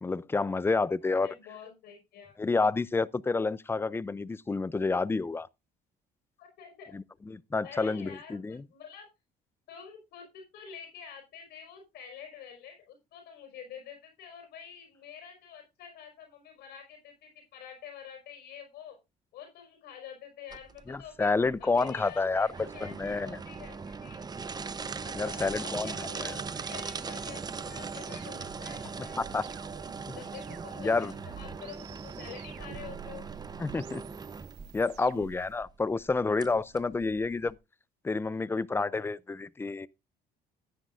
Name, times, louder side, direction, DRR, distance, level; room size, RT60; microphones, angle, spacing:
voice 1, 0.0-1.3 2.4-5.5 6.9-8.6 20.9-23.4 25.1-26.3 29.2-29.4 30.1-30.2 30.8-31.1 33.6-34.0 34.7-37.6 38.0-39.9, left 3 dB, 15° left, 0.5 m, -29 dB
voice 2, 1.0-2.3 6.4-6.9 7.6-9.1 9.7-19.0 19.3-24.3 25.0-29.2 30.1-33.3, left 8 dB, 75° left, 5.3 m, -48 dB
sound 1, 20.5-37.5, right 5 dB, 25° right, 0.8 m, -40 dB
sound 2, 25.8-35.5, right 14 dB, 80° right, 0.7 m, -50 dB
14.0 x 10.0 x 2.5 m
cardioid pair, 110°, 17 cm